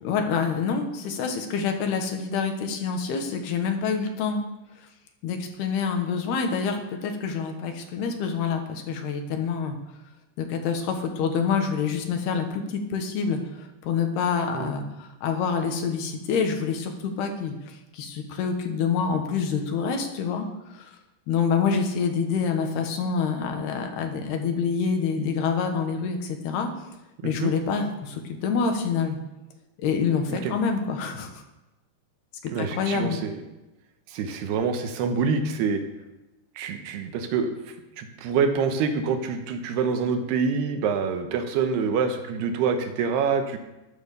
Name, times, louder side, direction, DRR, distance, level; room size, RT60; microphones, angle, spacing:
voice 1, 0.0-4.4 5.2-9.8 10.4-20.5 20.7-20.9 21.3-26.7 27.2-29.2 29.8-31.4 32.6-33.2, left 6 dB, 75° left, 4 dB, 3.5 m, -27 dB
voice 2, 32.5-33.4 34.1-35.8 36.6-37.5 38.0-43.6, right 5 dB, 80° right, 7 dB, 3.1 m, -26 dB
12.5 x 11.0 x 6.7 m, 1.0 s
omnidirectional pair, 4.8 m